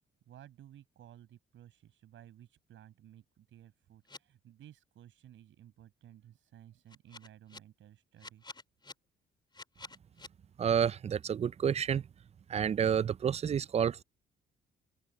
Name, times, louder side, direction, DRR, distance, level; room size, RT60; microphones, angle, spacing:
voice 1, 0.3-8.5, right 11 dB, 75° right, 6.5 m, -56 dB
sound 1, 4.1-4.2 6.9-7.6 8.2-8.9 9.5-10.3, left 3 dB, 20° left, 3.3 m, -48 dB
voice 2, 10.6-12.0 12.5-14.0, right 8 dB, 35° right, 0.4 m, -29 dB
open air
cardioid pair, 90°, 20 cm